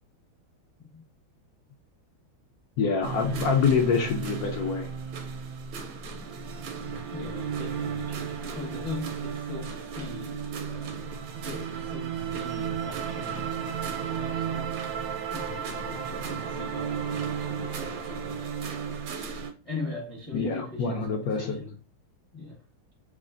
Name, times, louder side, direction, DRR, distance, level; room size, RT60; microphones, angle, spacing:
voice 1, 2.8-4.9 20.3-21.6, left 5 dB, 75° left, 0.8 m, -26 dB
sound 1, 3.0-19.5, right 7 dB, 75° right, 1.4 m, -34 dB
voice 2, 7.1-11.1 11.4-18.7 19.6-21.8 22.3-22.6, left 2 dB, 40° left, 0.5 m, -40 dB
4.9 x 2.4 x 2.5 m
omnidirectional pair, 2.3 m